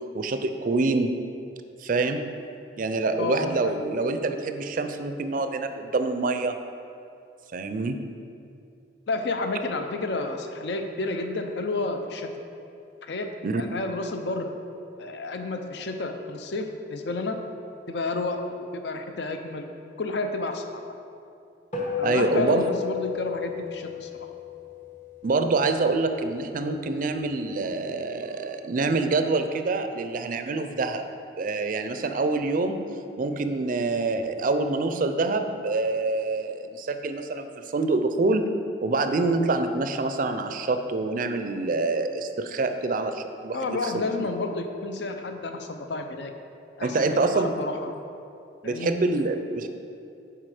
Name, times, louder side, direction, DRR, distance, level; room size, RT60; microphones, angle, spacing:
voice 1, 0.1-1.1 1.8-2.3 2.8-6.6 7.5-8.0 13.4-13.6 22.0-22.7 25.2-31.1 31.4-32.8 33.2-38.5 38.8-44.0 46.8-47.5 48.6-49.7, right 3 dB, 50° right, 8 dB, 0.4 m, -26 dB
voice 2, 3.2-3.7 9.1-12.3 13.0-14.5 15.0-17.4 17.9-19.7 20.0-20.8 22.0-24.1 43.5-46.3 46.8-47.9 48.6-48.9, left 2 dB, 70° left, 5 dB, 0.6 m, -31 dB
sound 1, 21.7-26.4, left 8 dB, 45° left, 1.2 m, -33 dB
7.5 x 4.7 x 4.9 m, 2.6 s
head